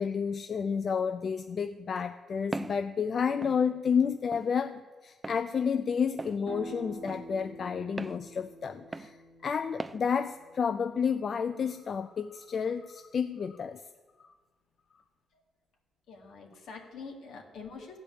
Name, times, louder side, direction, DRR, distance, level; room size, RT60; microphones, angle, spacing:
voice 1, 0.0-13.8 14.2-14.3, left 6 dB, 55° left, 9 dB, 0.4 m, -31 dB
Walk footsteps, 2.5-2.8 3.4-3.6 4.3-4.5 5.2-5.4 6.2-6.4 7.1-7.2 8.0-8.2 8.9-9.1 9.8-10.0, right 2 dB, 20° right, 0.4 m, -37 dB
sound 1, 6.4-12.0, right 2 dB, 80° right, 1.5 m, -48 dB
voice 2, 16.1-18.0, left 4 dB, 80° left, 1 dB, 2.0 m, -45 dB
15.0 x 5.1 x 8.4 m, 1.4 s
cardioid pair, 70°, 0 cm